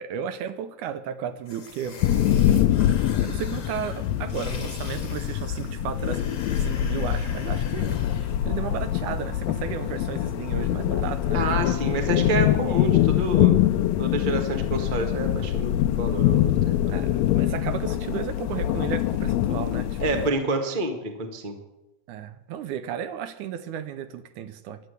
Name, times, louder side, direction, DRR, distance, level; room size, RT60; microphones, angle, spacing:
voice 1, 0.0-2.0 3.2-6.2 6.5-8.0 8.4-11.4 16.9-20.2 22.1-24.8, right 8 dB, 75° right, 11 dB, 2.1 m, -34 dB
sound 1, 1.4-8.5, left 4 dB, 40° left, 2.1 m, -41 dB
sound 2, 2.0-20.3, left 12 dB, 90° left, 1.5 m, -24 dB
voice 2, 11.3-13.5 14.0-17.0 20.0-21.5, right 2 dB, 35° right, 4 dB, 0.7 m, -28 dB
12.0 x 8.8 x 8.1 m, 0.96 s
omnidirectional pair, 3.7 m